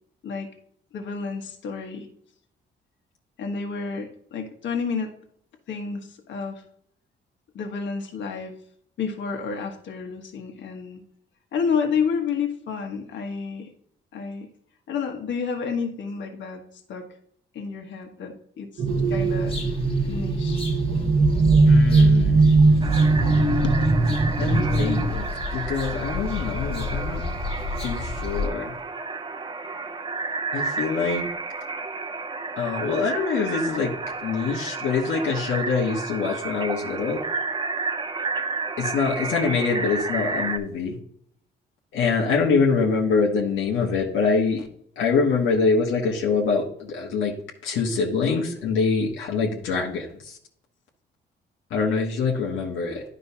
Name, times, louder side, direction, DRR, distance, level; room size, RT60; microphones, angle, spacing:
voice 1, 0.9-2.1 3.4-5.1 5.7-6.6 7.5-8.5 9.0-11.0 11.5-13.7 14.1-14.5 14.9-17.1 17.5-19.6 20.1-20.6 23.6-23.8 25.0-25.1 33.1-33.2, left 5 dB, 70° left, 4 dB, 1.4 m, -30 dB
sound 1, 18.8-25.1, right 3 dB, 75° right, 1.4 m, -19 dB
sound 2, 18.9-28.5, left 3 dB, 30° left, 1.5 m, -33 dB
voice 2, 21.7-22.7 24.4-27.2 27.8-28.7 30.5-31.2 32.6-33.9 34.2-37.2 38.8-41.0 41.9-44.6 45.0-47.3 47.6-50.4 51.7-53.0, left 5 dB, 85° left, -2 dB, 1.3 m, -24 dB
sound 3, 22.8-40.6, right 4 dB, 25° right, 0.8 m, -32 dB
10.0 x 5.3 x 2.8 m, 0.66 s
cardioid pair, 90°, 20 cm